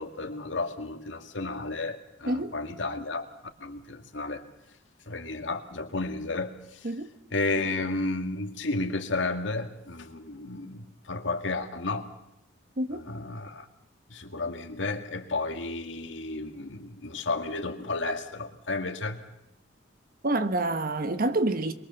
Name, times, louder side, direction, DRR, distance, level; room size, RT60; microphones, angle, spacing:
voice 1, 0.0-3.3 3.6-4.4 5.1-6.9 7.3-12.1 12.9-13.7 14.1-19.2, left 3 dB, 80° left, 2.1 m, -32 dB
voice 2, 20.2-21.7, right 2 dB, 50° right, 1.3 m, -27 dB
23.0 x 22.5 x 7.1 m
head